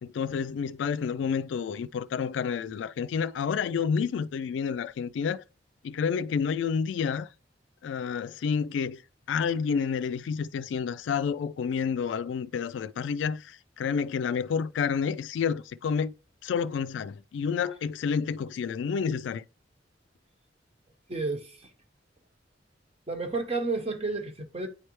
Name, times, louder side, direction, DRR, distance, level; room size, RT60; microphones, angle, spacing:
voice 1, 0.0-5.4 5.8-7.3 7.8-9.0 9.3-16.1 16.4-19.4, left 6 dB, 90° left, 0.3 m, -29 dB
voice 2, 21.1-21.7 23.1-24.7, right 3 dB, 35° right, 1.0 m, -31 dB
9.3 x 3.3 x 3.1 m
head